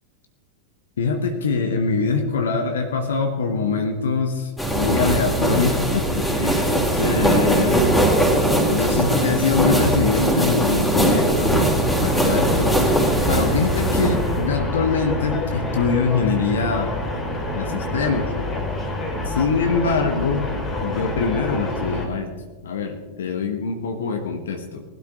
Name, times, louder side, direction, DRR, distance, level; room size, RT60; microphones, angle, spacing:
voice 1, 1.0-6.6 6.9-7.9 8.6-12.8 13.3-16.9 17.5-18.3 19.2-20.5 20.8-22.3 22.6-24.8, left 5 dB, 65° left, 5 dB, 1.3 m, -23 dB
sound 1, 4.6-14.5, right 1 dB, 10° left, 3.5 m, -20 dB
sound 2, 12.0-22.1, left 2 dB, 25° left, 3.5 m, -27 dB
20.0 x 12.0 x 3.8 m, 1.3 s
figure-of-eight pair, 90°, 0 cm